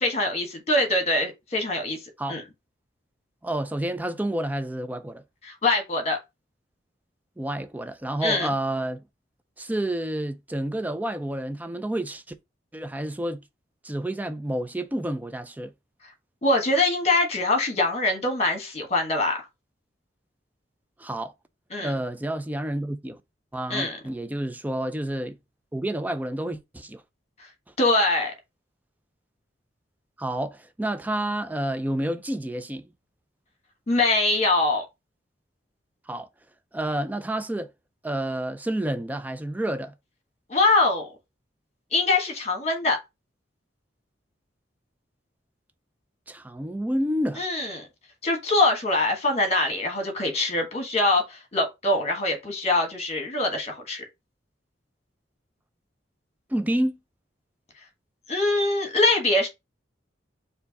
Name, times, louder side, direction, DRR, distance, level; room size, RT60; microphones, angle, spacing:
voice 1, 0.0-2.0 2.3-2.4 5.4-6.2 8.2-8.5 16.4-19.4 21.7-21.9 23.7-24.0 27.8-28.3 33.9-34.8 40.5-41.1 41.9-43.0 47.4-47.8 48.2-54.0 58.3-59.5, left 2 dB, 35° left, 1.4 m, -23 dB
voice 2, 3.4-5.2 7.4-9.0 9.6-12.3 12.7-13.4 13.8-15.7 21.0-21.3 21.8-23.2 23.5-25.4 25.7-27.0 30.2-32.8 36.1-36.3 36.7-37.7 38.0-39.9 46.3-47.4 56.5-56.9, right 1 dB, 10° right, 0.4 m, -29 dB
4.5 x 2.7 x 3.9 m
head